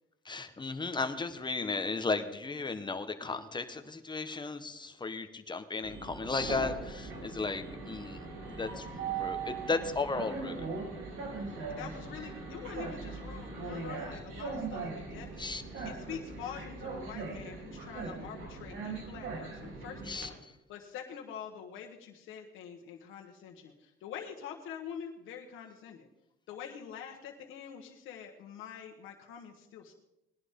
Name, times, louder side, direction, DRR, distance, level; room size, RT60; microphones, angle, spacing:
voice 1, 0.2-10.7 15.4-15.9 20.1-20.5, left 3 dB, 20° left, 8 dB, 1.2 m, -35 dB
Train, 5.8-20.2, right 4 dB, 75° right, 3.5 m, -40 dB
voice 2, 11.7-15.6 15.8-26.1 26.5-29.9, left 8 dB, 90° left, 1 dB, 1.4 m, -45 dB
19.5 x 11.0 x 3.7 m, 0.87 s
cardioid pair, 90°, 20 cm